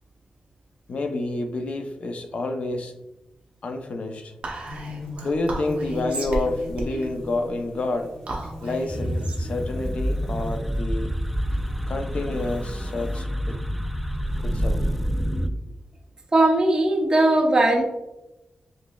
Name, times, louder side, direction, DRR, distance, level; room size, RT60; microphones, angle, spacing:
voice 1, 0.9-2.9 3.6-4.3 5.2-8.1 8.6-11.1 11.9-13.6 14.4-14.9, left 2 dB, 55° left, 5 dB, 0.5 m, -29 dB
Whispering, 4.4-11.1, right 2 dB, 55° right, 0.9 m, -35 dB
sound 1, 4.6-10.8 11.4-13.2, left 1 dB, 25° left, 1.3 m, -40 dB
sound 2, 8.9-15.5, equal, ahead, 0.3 m, -27 dB
voice 2, 16.3-17.8, right 2 dB, 30° right, 0 dB, 0.7 m, -19 dB
5.2 x 3.1 x 2.3 m, 0.95 s
wide cardioid pair, 135°, 3 cm